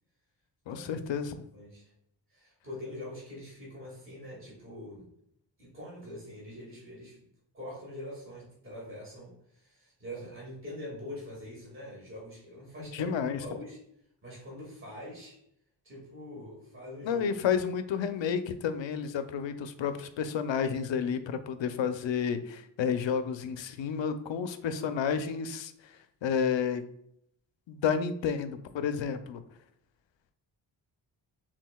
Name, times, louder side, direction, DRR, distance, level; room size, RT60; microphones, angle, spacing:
voice 1, 0.7-1.4 12.9-13.4 17.0-25.9 26.2-26.8 27.7-29.4, left 7 dB, 85° left, 10 dB, 0.6 m, -31 dB
voice 2, 1.5-1.9 2.3-5.1 5.6-7.3 7.5-13.8 14.2-15.4 15.8-17.3, left 1 dB, 30° right, -5 dB, 1.9 m, -44 dB
6.3 x 3.7 x 2.2 m, 0.73 s
wide cardioid pair, 175°, 44 cm